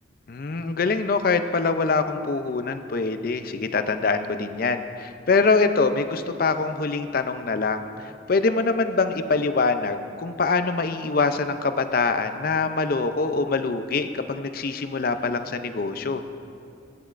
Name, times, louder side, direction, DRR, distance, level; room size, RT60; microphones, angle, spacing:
voice 1, 0.3-16.2, left 4 dB, 45° left, 9 dB, 0.5 m, -24 dB
16.5 x 9.5 x 2.5 m, 2.5 s
head